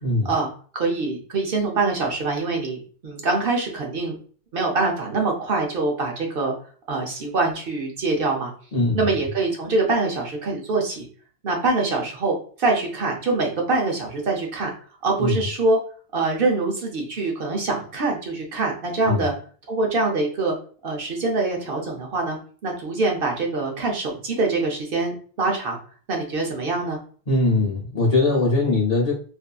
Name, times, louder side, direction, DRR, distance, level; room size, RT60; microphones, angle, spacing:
voice 1, 0.2-4.2 4.5-6.5 6.9-8.5 8.9-11.1 11.4-14.7 15.0-15.8 16.1-19.3 19.7-20.6 20.8-22.4 22.6-25.8 26.1-27.0, right 3 dB, 60° right, 0 dB, 0.7 m, -24 dB
voice 2, 8.7-9.1 15.2-15.4 19.1-19.3 27.3-29.1, left 2 dB, 45° left, -5 dB, 0.6 m, -21 dB
2.6 x 2.4 x 2.2 m, 0.43 s
omnidirectional pair, 1.2 m